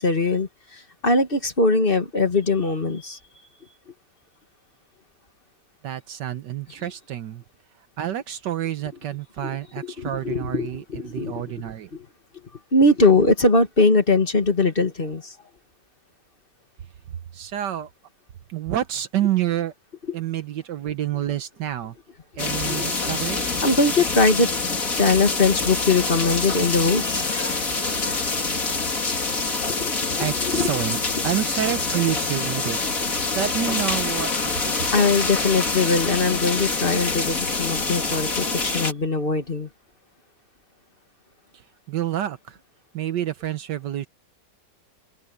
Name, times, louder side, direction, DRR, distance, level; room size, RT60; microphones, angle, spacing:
voice 1, 0.0-3.2 9.4-11.4 11.9-12.1 12.7-15.3 22.7-22.8 23.6-24.5 25.0-28.3 29.1-29.2 29.7-30.7 34.9-39.7, left 3 dB, 30° left, 2.2 m, -21 dB
voice 2, 5.8-7.4 8.0-11.9 17.3-17.9 18.5-19.7 20.1-21.9 22.4-23.6 30.2-31.0 31.2-34.3 34.6-34.8 41.9-42.6 42.9-44.1, right 11 dB, 75° right, 1.5 m, -28 dB
sound 1, 22.4-38.9, left 3 dB, 50° left, 3.1 m, -26 dB
omnidirectional pair, 1.9 m